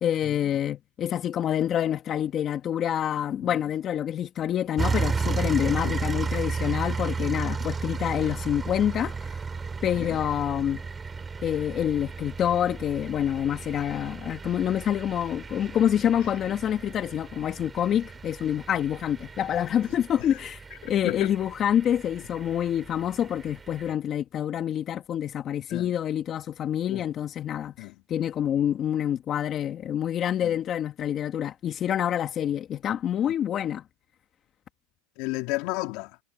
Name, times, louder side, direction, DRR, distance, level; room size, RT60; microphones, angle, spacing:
voice 1, 0.0-9.4 9.8-10.8 11.4-33.8, left 10 dB, 35° left, 2.0 m, -27 dB
sound 1, 4.8-23.9, right 4 dB, 15° right, 4.6 m, -34 dB
voice 2, 21.0-21.4 25.7-25.9 26.9-27.1 27.8-27.9 30.4-30.5 35.2-36.2, left 23 dB, 55° left, 3.1 m, -33 dB
supercardioid pair, 125°, 0 cm